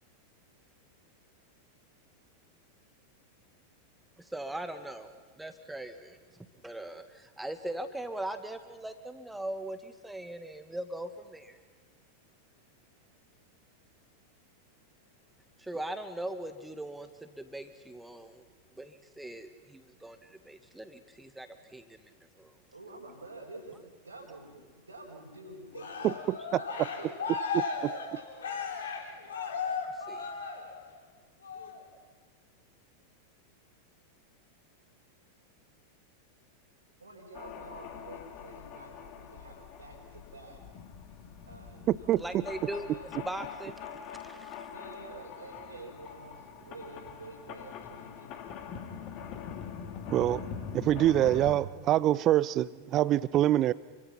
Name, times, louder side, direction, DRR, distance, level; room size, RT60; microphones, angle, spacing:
voice 1, 4.3-6.2 6.6-11.6 15.6-18.4 18.7-21.5 21.7-21.8 22.4-22.5 30.1-30.3 42.2-43.7 44.1-44.6, right 1 dB, 5° right, 9 dB, 1.9 m, -40 dB
voice 2, 22.7-26.3 26.5-27.5 28.1-28.3 37.0-40.6 41.5-42.2 42.7-43.4 44.7-48.4, right 2 dB, 80° right, -4 dB, 5.2 m, -49 dB
Cheering, 25.7-31.0 31.4-31.8, left 5 dB, 65° left, 3.7 m, -36 dB
voice 3, 27.5-27.9 41.9-42.4 50.1-50.4 50.7-53.7, right 13 dB, 35° right, 20 dB, 0.6 m, -25 dB
sound 1, 37.3-51.6, left 7 dB, 40° left, 2.8 m, -43 dB
29.0 x 23.5 x 5.8 m, 1.5 s
figure-of-eight pair, 90°, 0 cm